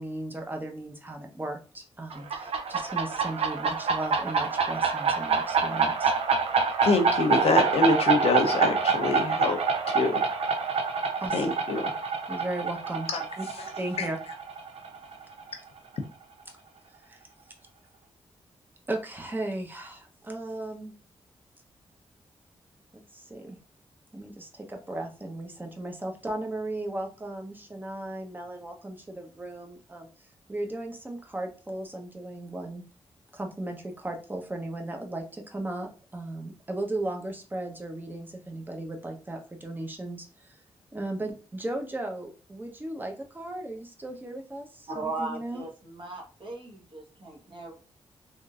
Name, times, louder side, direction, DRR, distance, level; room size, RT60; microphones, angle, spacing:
voice 1, 0.0-6.1 11.2-11.4 12.3-13.1 13.4-13.5 13.8-14.2 17.1-17.2 18.9-20.9 23.1-23.6 24.1-30.1 30.5-32.8 33.3-40.6 40.9-45.6, right 1 dB, 20° right, 3 dB, 0.8 m, -36 dB
sound 1, 2.1-15.5, right 5 dB, 70° right, 0.5 m, -27 dB
voice 2, 6.8-9.6 9.9-10.2 11.3-11.9 13.1-13.2 14.0-14.1, left 3 dB, 70° left, 5 dB, 0.6 m, -25 dB
voice 3, 44.9-47.8, right 3 dB, 50° right, -1 dB, 1.2 m, -37 dB
3.6 x 2.6 x 2.4 m, 0.36 s
cardioid pair, 80°, 11 cm